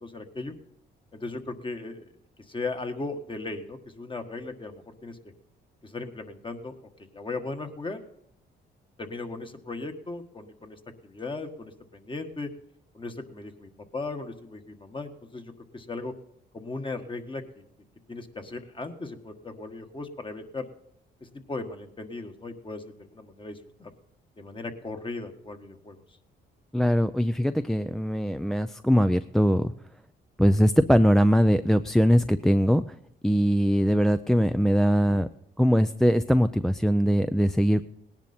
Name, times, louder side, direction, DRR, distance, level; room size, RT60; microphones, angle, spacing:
voice 1, 0.0-0.5 1.1-2.1 2.5-5.2 5.8-6.7 7.1-8.0 9.0-12.5 12.9-16.1 16.5-17.4 18.1-20.7 21.2-23.9 24.4-26.0, left 3 dB, 25° left, 6 dB, 1.5 m, -37 dB
voice 2, 26.7-29.7 30.4-32.8 33.2-35.3 35.6-37.8, equal, ahead, 9 dB, 0.4 m, -21 dB
18.5 x 10.5 x 4.3 m, 0.78 s
cardioid pair, 90°, 20 cm